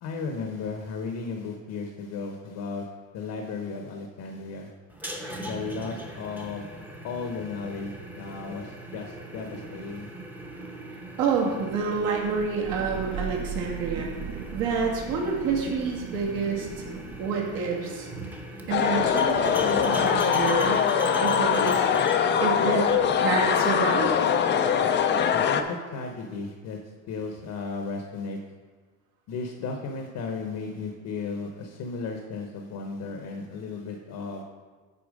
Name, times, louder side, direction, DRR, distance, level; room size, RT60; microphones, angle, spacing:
voice 1, 0.0-2.9 3.1-4.7 5.4-6.7 7.0-10.1 25.3-26.8 27.1-28.4 29.3-34.4, left 4 dB, 55° left, 3 dB, 0.9 m, -35 dB
sound 1, 4.9-24.3, right 1 dB, 5° right, 0.8 m, -40 dB
voice 2, 11.2-14.1 14.5-16.7 17.2-18.1 18.7-20.9 21.2-24.1, right 5 dB, 70° right, -1 dB, 1.8 m, -28 dB
Thunder / Rain, 11.9-17.6, right 6 dB, 45° right, 0.5 m, -39 dB
sound 2, 18.7-25.6, left 7 dB, 30° left, 0.4 m, -22 dB
8.6 x 4.3 x 5.2 m, 1.4 s
cardioid pair, 140°, 37 cm